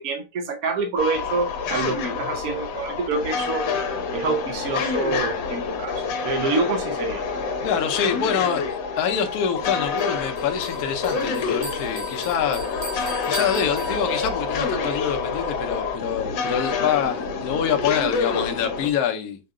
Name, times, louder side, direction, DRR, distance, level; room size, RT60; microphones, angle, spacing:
voice 1, 0.0-3.6 4.1-7.2, right 4 dB, 65° right, 0.9 m, -27 dB
sound 1, 1.0-18.9, left 5 dB, 85° left, 1.5 m, -27 dB
voice 2, 7.6-8.6 9.0-12.6 13.3-19.4, left 8 dB, 65° left, 1.1 m, -25 dB
Bell, 10.0-14.5, right 3 dB, 85° right, 2.1 m, -39 dB
5.5 x 2.3 x 3.6 m
omnidirectional pair, 2.0 m